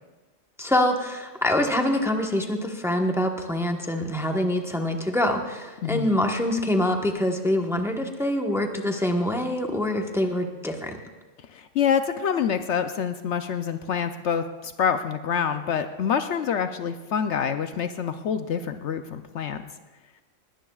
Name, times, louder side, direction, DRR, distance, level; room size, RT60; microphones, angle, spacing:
voice 1, 0.6-10.9, left 1 dB, ahead, 3 dB, 1.0 m, -25 dB
voice 2, 5.8-6.1 11.5-19.6, left 7 dB, 65° left, 9 dB, 0.9 m, -26 dB
20.5 x 18.0 x 2.4 m, 1.2 s
omnidirectional pair, 1.3 m